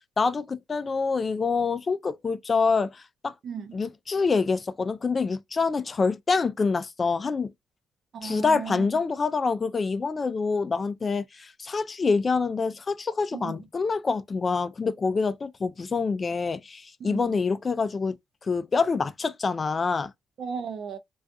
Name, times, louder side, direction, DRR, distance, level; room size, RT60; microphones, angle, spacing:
voice 1, 0.2-3.3 3.7-7.5 8.2-18.2 18.4-20.1, left 4 dB, 35° left, 0.3 m, -26 dB
voice 2, 3.4-3.8 8.1-8.9 13.3-13.6 17.0-17.3 20.4-21.0, right 6 dB, 60° right, 0.5 m, -35 dB
2.4 x 2.3 x 2.5 m
cardioid pair, 90°, 0 cm